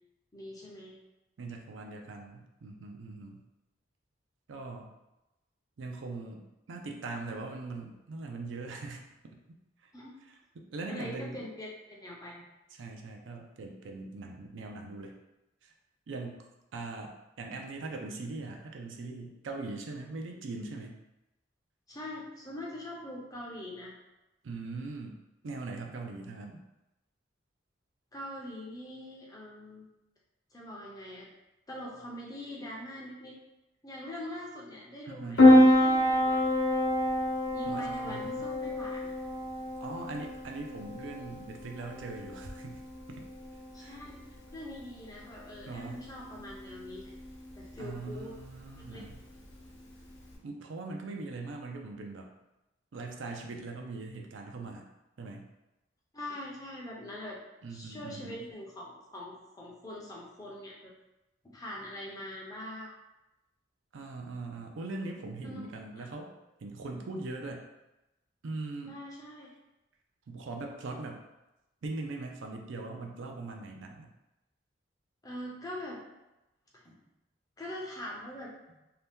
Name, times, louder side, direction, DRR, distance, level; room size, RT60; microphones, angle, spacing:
voice 1, 0.3-1.0 9.9-10.1 10.9-12.4 21.9-23.9 28.1-29.9 30.5-31.3 31.7-33.4 33.8-36.5 37.5-39.1 43.7-44.3 44.5-47.1 47.5-48.3 48.9-49.0 56.1-57.4 57.7-60.9 61.4-62.9 65.4-66.1 68.9-69.5 75.2-76.0 76.7-76.9 77.6-78.5, left 1 dB, 20° left, -3 dB, 0.5 m, -43 dB
voice 2, 1.4-3.4 4.5-4.9 5.8-9.4 9.8-9.9 10.6-11.4 12.8-15.1 15.6-15.7 16.1-16.4 16.7-21.0 24.4-25.2 25.4-26.6 35.0-35.5 37.7-38.5 39.8-42.8 43.1-43.2 43.8-44.0 45.7-46.0 47.8-49.2 50.4-52.3 52.9-54.9 55.2-55.5 57.6-58.4 63.9-66.3 66.6-67.7 68.4-69.0 70.3-71.2 71.8-74.1, right 3 dB, 75° right, 2 dB, 0.4 m, -41 dB
Piano, 35.4-50.3, left 1 dB, 75° left, 0.8 m, -28 dB
2.8 x 2.2 x 3.4 m, 0.96 s
head